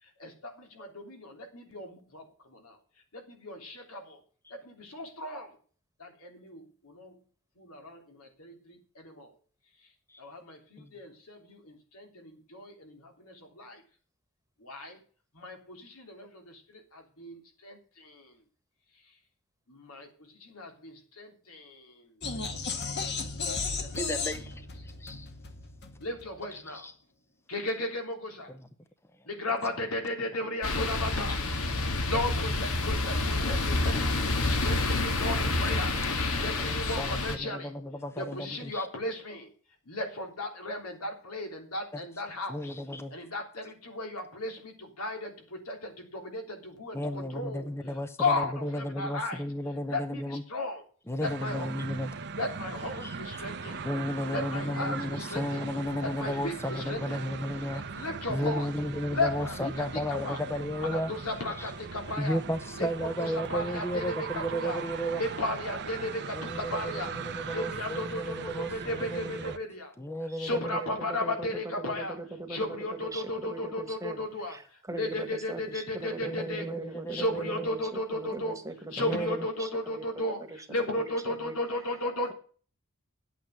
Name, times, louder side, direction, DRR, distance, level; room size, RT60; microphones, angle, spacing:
voice 1, 0.0-2.8 3.1-4.2 4.5-5.6 6.0-7.1 7.6-9.3 10.2-13.8 14.6-15.0 15.3-18.3 19.7-22.1 23.7-24.1 26.0-26.9 27.5-28.5 29.3-31.4 32.1-34.1 34.5-36.0 36.4-37.7 38.2-39.5 39.8-42.6 43.1-47.7 48.2-49.4 49.9-50.8 51.2-51.7 52.4-53.9 54.3-55.6 56.0-57.2 57.7-58.7 59.1-60.4 60.8-62.4 62.8-64.8 65.2-67.1 67.4-69.9 70.4-72.2 72.5-76.7 77.1-78.6 78.9-82.3, left 2 dB, 90° left, 3.3 m, -35 dB
sound 1, 22.2-26.4, left 4 dB, 50° left, 1.6 m, -35 dB
voice 2, 23.9-25.3 26.7-26.9 36.3-38.9 42.5-43.2 46.9-50.4 51.1-52.1 53.0-53.4 53.8-57.8 58.3-61.1 61.6-61.7 62.2-65.2 66.3-69.5 70.0-70.8 76.2-77.7 79.0-79.5, equal, 10° left, 0.6 m, -34 dB
sound 2, 30.6-37.4, left 2 dB, 70° left, 1.7 m, -28 dB
sound 3, 51.2-69.6, right 5 dB, 55° right, 0.9 m, -40 dB
voice 3, 70.3-71.5 71.8-72.8 73.0-74.6 74.9-80.0 81.3-81.5, right 2 dB, 15° right, 1.4 m, -40 dB
10.5 x 8.4 x 6.4 m
head